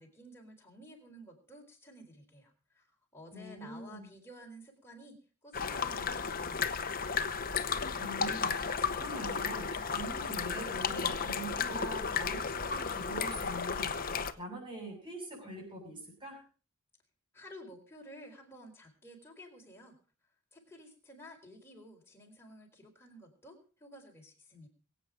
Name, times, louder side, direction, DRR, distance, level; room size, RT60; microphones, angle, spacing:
voice 1, 0.0-2.9 3.1-6.8 17.3-20.0 20.5-24.7, equal, 10° left, 0 dB, 4.2 m, -53 dB
voice 2, 3.3-4.1 8.0-16.4, right 1 dB, 25° right, -1 dB, 7.6 m, -44 dB
sound 1, 5.5-14.3, left 5 dB, 40° left, 0.9 m, -34 dB
23.0 x 8.8 x 5.0 m, 0.39 s
head